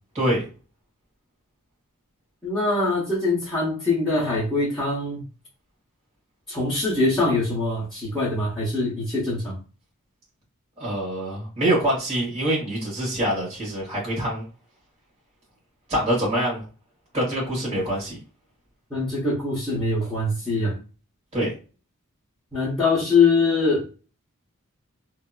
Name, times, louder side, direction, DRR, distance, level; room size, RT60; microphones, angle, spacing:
voice 1, 0.1-0.5 10.8-14.4 15.9-16.6 17.1-18.2 21.3-21.5, right 1 dB, 30° right, -5 dB, 1.5 m, -25 dB
voice 2, 2.4-5.3 6.5-9.5 18.9-20.7 22.5-23.9, left 3 dB, ahead, -11 dB, 1.1 m, -23 dB
2.8 x 2.7 x 2.3 m, 0.34 s
head